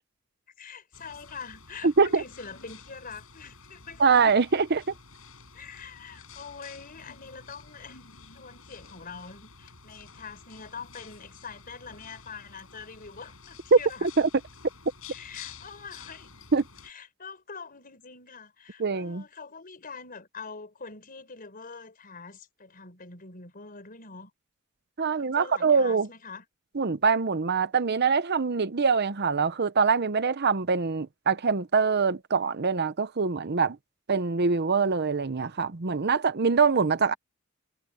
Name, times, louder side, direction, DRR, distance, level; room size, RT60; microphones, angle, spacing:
voice 1, 0.6-4.2 5.5-8.1 8.3-14.1 15.1-16.3 16.8-24.3 25.1-26.5, left 5 dB, 45° left, 4.6 m, -44 dB
sound 1, 0.9-16.9, left 5 dB, 80° left, 6.6 m, -50 dB
voice 2, 1.8-2.2 4.0-4.8 13.7-14.3 16.5-16.6 18.8-19.2 25.0-26.1 26.7-33.8 34.1-37.1, right 5 dB, 55° right, 0.8 m, -24 dB
head